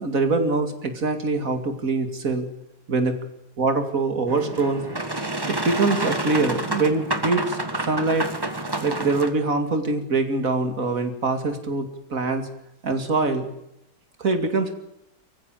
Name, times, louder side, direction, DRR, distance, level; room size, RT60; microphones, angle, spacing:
voice 1, 0.0-2.5 2.9-3.2 3.6-4.8 5.5-8.3 8.8-12.5 12.8-13.5 14.2-14.7, right 3 dB, 45° right, 8 dB, 2.7 m, -24 dB
Boat Water vehicle, 4.3-9.3, right 1 dB, 15° right, 1.5 m, -28 dB
24.0 x 15.0 x 9.0 m, 0.84 s
omnidirectional pair, 2.2 m